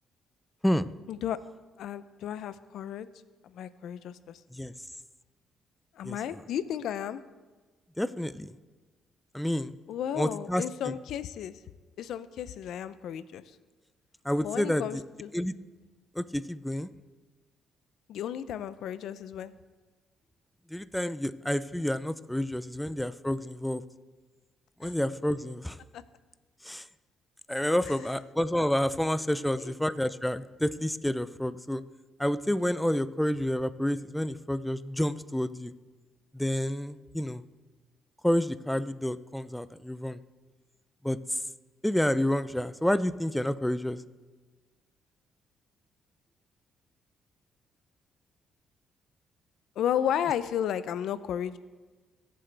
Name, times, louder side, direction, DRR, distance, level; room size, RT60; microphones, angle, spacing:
voice 1, 1.1-1.4 1.8-3.1 3.4-4.4 6.0-7.2 9.9-11.6 12.0-13.6 14.4-15.3 18.1-19.5 24.8-24.9 25.9-26.0 29.6-29.7 49.8-51.6, left 10 dB, 80° left, 15 dB, 0.5 m, -33 dB
voice 2, 8.0-8.6 9.3-9.7 10.2-10.9 14.2-15.0 15.3-15.5 16.1-16.9 20.7-23.9 24.8-25.8 26.6-26.9 27.5-31.8 32.2-35.7 36.3-37.4 38.2-40.2 41.0-41.4 41.8-44.0, left 1 dB, 5° left, 15 dB, 0.5 m, -29 dB
22.5 x 7.7 x 3.4 m, 1.3 s
cardioid pair, 90°, 0 cm